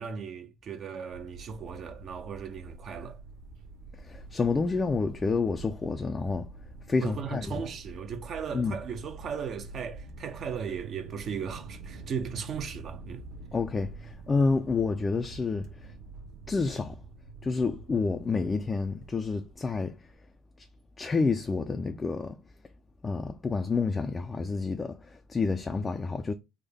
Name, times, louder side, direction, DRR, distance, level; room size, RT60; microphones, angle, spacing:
voice 1, 0.0-3.2 7.0-13.2, right 7 dB, 45° right, 0.5 m, -37 dB
sound 1, 1.1-20.1, right 3 dB, 70° right, 1.0 m, -46 dB
voice 2, 4.0-6.5 6.9-7.6 8.5-8.8 13.5-15.9 16.5-17.0 17.4-20.1 20.6-20.7 21.0-22.4 23.0-26.3, left 4 dB, 20° left, 0.3 m, -29 dB
3.5 x 2.1 x 3.4 m
cardioid pair, 115°, 0 cm